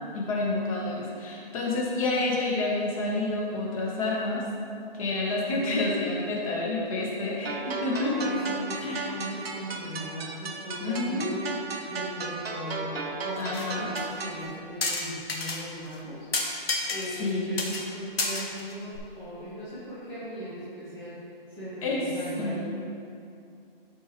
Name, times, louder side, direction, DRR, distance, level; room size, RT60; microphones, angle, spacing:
voice 1, 0.1-4.4 4.9-8.3 8.8-9.1 10.8-11.3 13.3-14.0 17.2-17.6 21.8-22.0 22.4-22.5, left 2 dB, 35° left, -4 dB, 1.7 m, -29 dB
sound 1, 7.5-14.5, right 4 dB, 90° right, 1.1 m, -35 dB
voice 2, 8.0-11.5 11.9-16.3 16.9-21.2 21.5-22.8, equal, 5° left, -11 dB, 0.6 m, -38 dB
sound 2, 13.4-13.7 14.0-14.1 14.8-15.6 15.9-16.0 16.3-17.3 17.6-17.8 18.2-19.0, left 3 dB, 80° left, 1.4 m, -30 dB
13.0 x 4.6 x 3.1 m, 2.6 s
hypercardioid pair, 160°, 30 cm